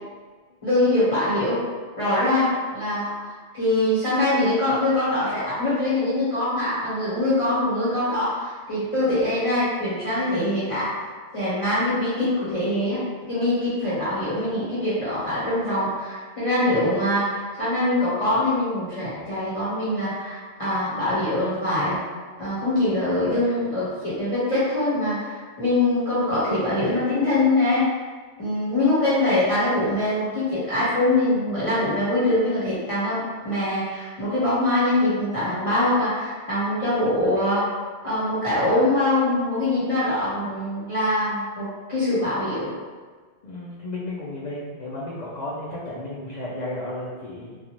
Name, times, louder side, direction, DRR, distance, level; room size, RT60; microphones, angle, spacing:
voice 1, 0.6-1.6 2.0-3.1 3.5-10.9 11.3-13.0 13.3-22.0 22.4-27.9 28.4-37.7 38.0-42.7, left 1 dB, 30° left, -11 dB, 1.0 m, -23 dB
voice 2, 43.4-47.6, left 1 dB, 60° left, -8 dB, 0.4 m, -33 dB
2.4 x 2.3 x 2.9 m, 1.4 s
omnidirectional pair, 1.2 m